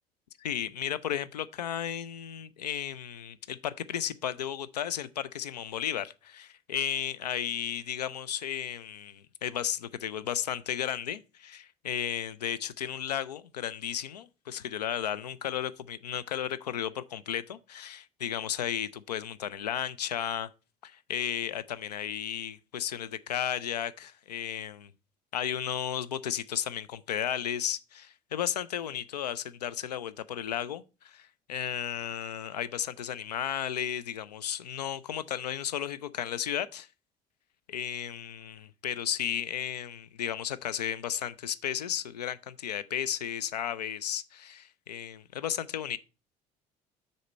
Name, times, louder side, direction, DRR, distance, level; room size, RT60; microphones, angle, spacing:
voice 1, 0.4-20.5 20.8-24.9 25.3-36.9 37.7-46.0, left 10 dB, 85° left, 0.4 m, -34 dB
6.5 x 4.2 x 6.3 m
figure-of-eight pair, 60°, 20 cm